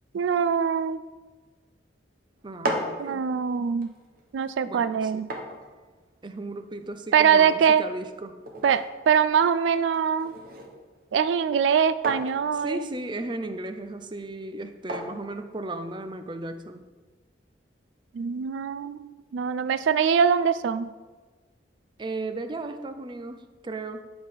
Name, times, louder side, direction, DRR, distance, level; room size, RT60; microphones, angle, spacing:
voice 1, 0.1-1.0 3.0-3.9 4.3-5.3 7.1-7.8 8.6-10.3 11.1-12.8 18.1-20.9, right 7 dB, 85° right, 14 dB, 0.3 m, -23 dB
voice 2, 2.4-3.3 4.7-5.3 6.2-8.3 12.5-16.8 22.0-24.1, right 2 dB, 25° right, 8 dB, 0.5 m, -35 dB
sound 1, 2.4-16.2, right 1 dB, 55° right, 1.1 m, -39 dB
7.9 x 5.3 x 5.7 m, 1.3 s
head